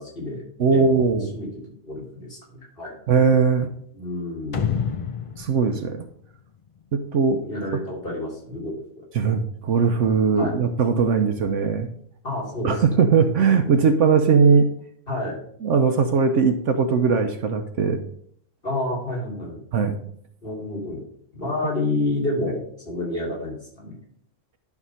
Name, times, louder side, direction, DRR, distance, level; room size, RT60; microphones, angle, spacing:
voice 1, 0.0-0.4 0.7-1.5 1.8-2.9 3.9-4.6 7.4-9.0 10.3-10.6 12.2-12.7 15.1-15.4 18.6-19.6 20.4-21.0 21.3-24.0, left 2 dB, 40° left, -4 dB, 3.1 m, -29 dB
voice 2, 0.6-1.3 3.1-3.7 5.4-6.1 6.9-7.4 9.1-11.9 12.6-14.7 15.6-18.0 19.7-20.0, right 5 dB, 65° right, 7 dB, 1.0 m, -19 dB
sound 1, 4.5-7.1, left 7 dB, 60° left, 0.3 m, -29 dB
10.5 x 3.6 x 5.6 m, 0.64 s
omnidirectional pair, 1.4 m